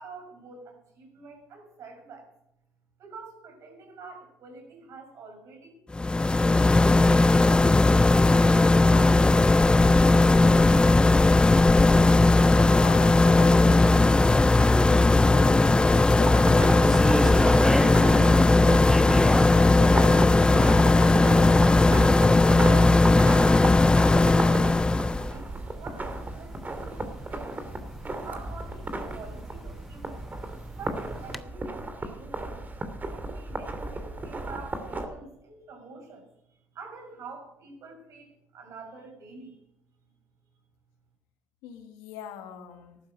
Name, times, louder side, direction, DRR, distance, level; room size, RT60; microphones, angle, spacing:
voice 1, 0.0-2.3 3.0-5.8 6.2-7.7 8.3-9.4 22.6-25.5 25.8-27.6 28.1-30.2 30.6-32.6 33.1-39.6, right 4 dB, 65° right, 3 dB, 6.3 m, -46 dB
sound 1, 5.9-25.3, left 2 dB, 15° left, 0.4 m, -18 dB
voice 2, 12.5-21.4 41.6-43.0, left 7 dB, 85° left, 6 dB, 1.6 m, -40 dB
sound 2, 14.6-31.4, equal, ahead, 1.0 m, -36 dB
sound 3, 16.2-35.1, right 2 dB, 30° right, 2.8 m, -34 dB
14.0 x 12.0 x 6.4 m, 0.79 s
supercardioid pair, 60°, 6 cm